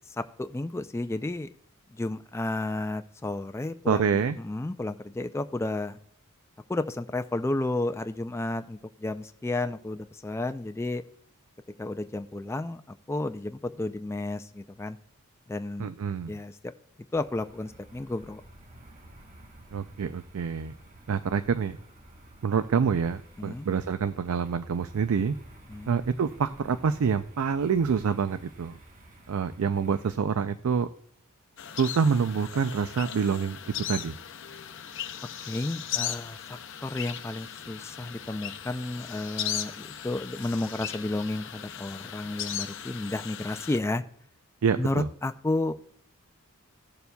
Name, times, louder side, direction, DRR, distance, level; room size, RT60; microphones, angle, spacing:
voice 1, 0.2-1.5 1.9-6.0 6.7-11.0 11.8-12.8 13.1-15.0 15.5-15.9 16.3-16.7 17.1-18.4 23.4-23.7 25.7-25.9 35.4-44.0 44.8-45.7, left 2 dB, 10° left, 9 dB, 0.3 m, -32 dB
voice 2, 3.9-4.4 15.8-16.3 19.7-20.7 21.1-21.8 22.4-25.3 25.9-28.8 29.3-30.9 31.7-33.6 33.9-34.1 44.6-45.1, right 6 dB, 75° right, 11 dB, 0.4 m, -26 dB
sound 1, 17.1-30.2, right 1 dB, 35° right, 1.0 m, -52 dB
sound 2, 31.6-43.8, left 10 dB, 55° left, 0.6 m, -37 dB
17.0 x 6.9 x 2.2 m, 0.67 s
head